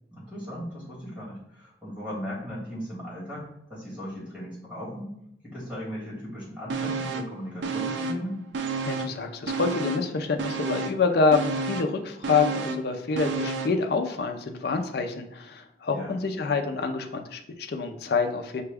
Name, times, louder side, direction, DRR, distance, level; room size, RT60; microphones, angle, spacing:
voice 1, 0.1-5.1 5.4-8.4 15.9-16.2, equal, 5° right, -6 dB, 1.6 m, -37 dB
sound 1, 6.7-7.4 7.6-9.2 9.5-13.8 14.2-14.3, right 4 dB, 80° right, 0.4 m, -31 dB
voice 2, 8.8-18.6, left 4 dB, 60° left, 5 dB, 0.5 m, -27 dB
5.8 x 2.2 x 3.4 m, 0.77 s
head